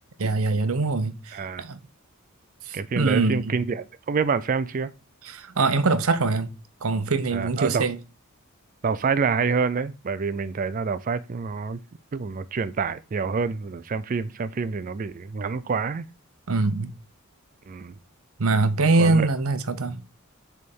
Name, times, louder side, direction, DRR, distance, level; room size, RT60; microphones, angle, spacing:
voice 1, 0.2-1.8 2.7-3.6 5.2-6.5 6.8-8.0 16.5-16.9 18.4-20.0, right 3 dB, 70° right, 0.7 m, -23 dB
voice 2, 1.3-1.6 2.7-4.9 7.3-7.9 8.8-11.8 12.1-16.1 17.7-17.9 19.0-19.2, right 5 dB, 35° right, 0.4 m, -27 dB
6.7 x 3.5 x 5.3 m
head